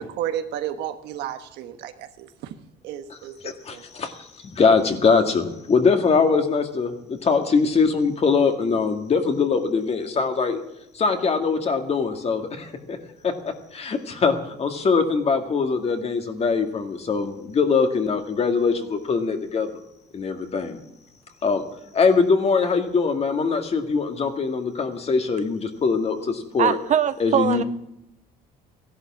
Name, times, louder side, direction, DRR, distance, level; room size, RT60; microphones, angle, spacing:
voice 1, 0.0-2.5 2.8-3.8, right 10 dB, 85° right, 8 dB, 1.3 m, -32 dB
voice 2, 3.4-10.6 10.9-13.0 13.2-19.7 20.1-20.8 21.4-21.6 21.9-26.8 27.2-27.6, left 5 dB, 40° left, 5 dB, 2.0 m, -22 dB
voice 3, 26.6-27.6, right 9 dB, 45° right, 13 dB, 0.5 m, -21 dB
15.5 x 11.5 x 7.3 m, 0.83 s
cardioid pair, 110°, 17 cm